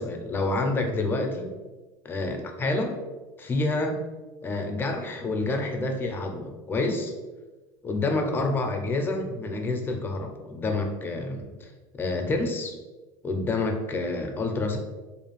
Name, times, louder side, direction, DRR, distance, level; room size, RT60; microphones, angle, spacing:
voice 1, 0.0-1.5 2.0-3.0 3.4-4.0 4.4-7.1 7.8-11.7 12.0-12.8 13.2-14.8, left 2 dB, 20° left, 4 dB, 0.4 m, -28 dB
2.5 x 2.3 x 3.0 m, 1.2 s
supercardioid pair, 115°, 10 cm